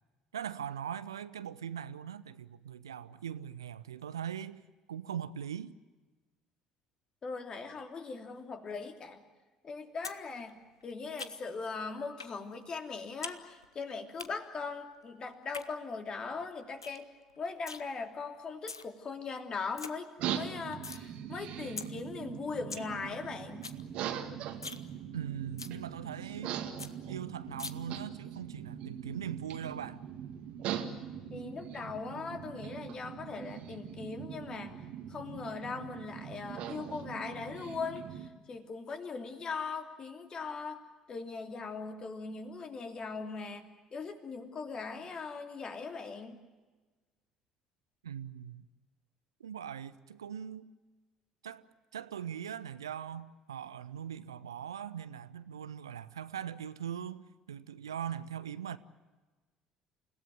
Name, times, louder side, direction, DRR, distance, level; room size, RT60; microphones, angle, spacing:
voice 1, 0.3-4.6 4.9-5.7 25.1-26.6 27.1-30.0 48.0-48.6 49.4-50.7 51.4-51.7 51.9-58.8, right 9 dB, 75° right, 0.7 m, -41 dB
voice 2, 7.2-9.2 9.6-10.6 10.8-17.1 17.4-23.7 31.3-34.8 35.1-40.8 41.1-46.4, left 4 dB, 35° left, 2.8 m, -40 dB
sound 1, 10.0-10.2 10.5-11.6 12.2-12.4 12.7-13.4 13.6-14.3 15.3-15.7 16.1-16.2 16.5-16.6 16.8-17.0 17.3-17.8 18.4-18.8 19.3-19.4 19.6-19.9 20.3-21.0 21.4-21.5 21.8-21.9 22.3-22.4 22.5-22.9 23.2-23.3 23.5-23.8 24.1-24.2 24.5-24.8 25.2-25.3 25.6-25.8 26.2-26.3 26.5-26.6 26.8-26.9 27.6-27.7, left 4 dB, 85° left, 0.8 m, -42 dB
sound 2, 20.2-38.3, right 9 dB, 55° right, 1.9 m, -41 dB
29.0 x 17.0 x 9.2 m
figure-of-eight pair, 55°, 2 cm